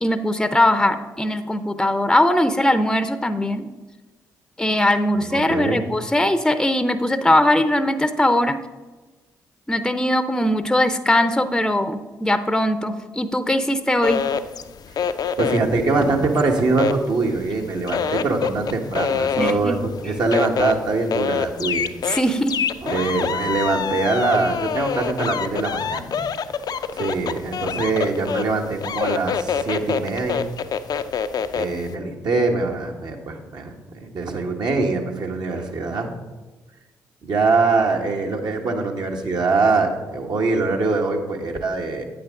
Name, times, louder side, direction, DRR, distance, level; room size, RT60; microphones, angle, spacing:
voice 1, 0.0-3.7 4.6-8.6 9.7-14.3 19.4-19.8 22.0-22.6 26.2-26.3, left 1 dB, 5° left, 11 dB, 0.7 m, -20 dB
voice 2, 5.2-5.8 15.4-19.8 20.0-21.9 22.8-26.1 26.9-30.5 31.5-33.7 34.0-36.1 37.2-42.1, right 3 dB, 55° right, 2 dB, 1.5 m, -23 dB
sound 1, 14.0-17.6 17.9-31.8, left 7 dB, 50° left, 0.5 m, -25 dB
9.2 x 8.7 x 3.8 m, 1.2 s
hypercardioid pair, 40°, 9 cm